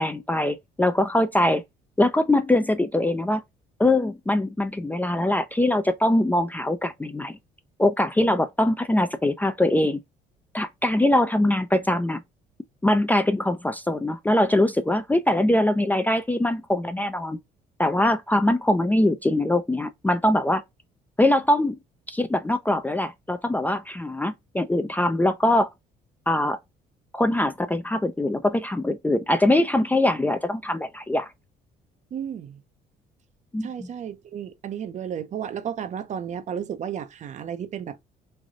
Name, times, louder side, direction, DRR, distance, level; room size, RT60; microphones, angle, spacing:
voice 1, 0.0-1.6 2.0-3.4 3.8-7.3 7.8-10.0 10.5-12.2 12.8-17.4 17.8-20.6 21.2-21.8 22.1-25.7 26.3-26.6 27.1-31.3 33.5-33.9, left 1 dB, 10° left, 0.4 m, -22 dB
voice 2, 32.1-32.6 33.6-38.0, right 8 dB, 45° right, 0.6 m, -33 dB
3.3 x 2.6 x 3.5 m
cardioid pair, 110°, 17 cm